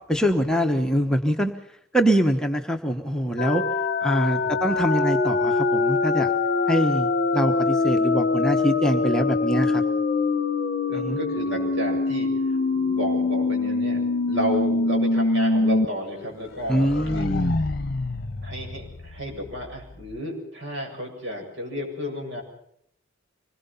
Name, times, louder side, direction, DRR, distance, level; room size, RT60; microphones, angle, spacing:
voice 1, 0.1-1.5 1.9-3.6 4.0-6.3 6.7-9.8 10.9-11.2 16.7-17.6, equal, 5° left, 2 dB, 1.1 m, -24 dB
sound 1, 3.4-15.9 16.2-16.3 16.7-19.4, left 3 dB, 50° left, 0.9 m, -24 dB
voice 2, 4.4-4.9 10.9-17.3 18.4-22.4, equal, 60° right, 1 dB, 7.9 m, -32 dB
25.5 x 21.0 x 5.7 m, 0.71 s
head